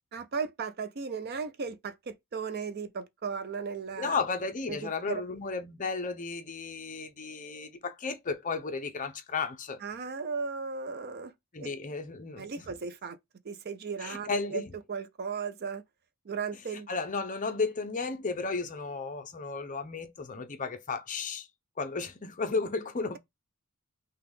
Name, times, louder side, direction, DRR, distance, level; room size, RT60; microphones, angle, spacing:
voice 1, 0.1-4.2 4.7-5.2 9.8-11.3 11.6-11.7 12.4-13.2 13.4-14.6 14.9-15.8 16.3-16.9, right 5 dB, 45° right, 0.5 m, -36 dB
voice 2, 4.0-9.8 11.5-12.5 14.0-14.7 16.7-21.5 21.8-23.2, left 4 dB, 35° left, 0.7 m, -34 dB
5.7 x 2.4 x 3.5 m
head